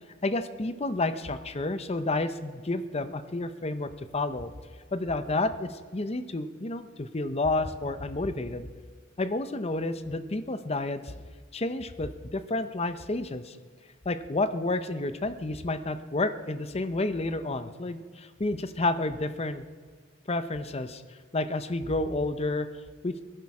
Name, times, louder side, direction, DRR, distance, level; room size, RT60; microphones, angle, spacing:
voice 1, 0.2-4.5 4.9-8.7 9.2-11.1 11.5-13.6 14.0-19.6 20.3-21.0 21.3-22.7 23.0-23.1, left 2 dB, 30° left, 10 dB, 0.7 m, -30 dB
21.0 x 11.5 x 4.9 m, 1.5 s
head